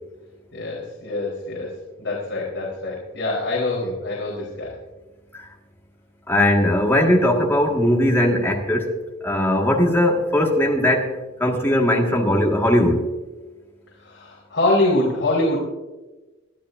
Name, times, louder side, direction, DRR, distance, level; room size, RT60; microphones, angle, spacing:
voice 1, 0.5-1.7 2.0-4.8 14.0-15.6, left 2 dB, 55° left, -5 dB, 4.0 m, -24 dB
voice 2, 6.3-8.9 9.2-11.1 11.4-13.0, left 1 dB, 10° left, -1 dB, 1.7 m, -19 dB
23.5 x 12.0 x 2.6 m, 1.2 s
head